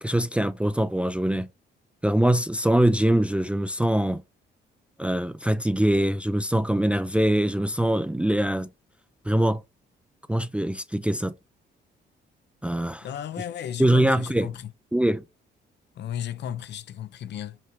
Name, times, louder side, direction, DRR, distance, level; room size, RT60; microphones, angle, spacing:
voice 1, 0.0-1.5 2.0-4.2 5.0-8.7 9.3-9.6 10.3-11.3 12.6-13.1 13.8-14.5 14.9-15.2, right 1 dB, 5° right, 0.3 m, -23 dB
voice 2, 13.0-14.7 16.0-17.6, left 10 dB, 60° left, 0.5 m, -34 dB
5.6 x 2.4 x 3.1 m
cardioid pair, 90°, 20 cm